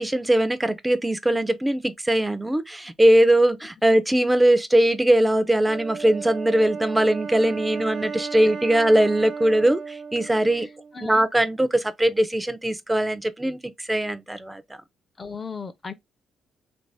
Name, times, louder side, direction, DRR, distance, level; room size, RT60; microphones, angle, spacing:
voice 1, 0.0-10.7 11.0-14.6, right 1 dB, 10° right, 0.6 m, -21 dB
Wind instrument woodwind instrument, 5.7-11.1, right 5 dB, 60° right, 1.1 m, -35 dB
voice 2, 10.9-11.3 15.2-15.9, left 5 dB, 30° left, 0.6 m, -35 dB
3.0 x 2.7 x 3.2 m
cardioid pair, 90°, 0 cm